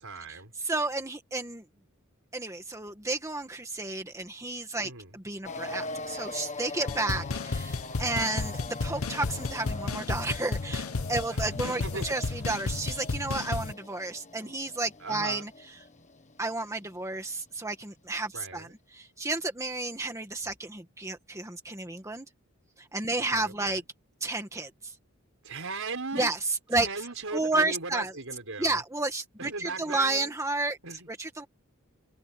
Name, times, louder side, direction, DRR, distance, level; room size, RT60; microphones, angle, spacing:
voice 1, 0.0-0.5 4.8-5.2 11.3-12.4 15.0-15.5 18.3-18.7 23.2-23.8 25.4-26.3 26.7-28.8 29.4-30.3 30.8-31.1, right 3 dB, 65° right, 6.4 m, -38 dB
voice 2, 0.6-1.6 2.3-15.5 16.4-22.3 22.8-23.8 24.2-24.9 26.1-26.4 26.7-26.9 27.3-28.1 28.6-30.8 31.1-31.5, right 2 dB, 15° right, 1.7 m, -32 dB
sound 1, 5.4-17.1, left 3 dB, 35° left, 1.6 m, -42 dB
sound 2, 6.9-13.7, left 3 dB, 80° left, 0.9 m, -33 dB
head